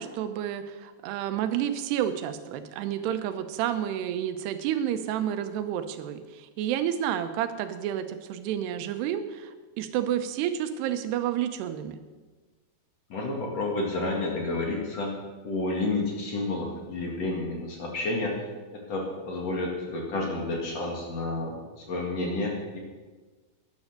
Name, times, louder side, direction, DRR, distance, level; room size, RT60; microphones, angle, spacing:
voice 1, 0.0-12.0, right 10 dB, 85° right, 9 dB, 3.0 m, -30 dB
voice 2, 13.1-18.4 18.7-22.8, left 2 dB, 50° left, 0 dB, 2.6 m, -30 dB
12.5 x 10.5 x 6.6 m, 1.3 s
omnidirectional pair, 4.7 m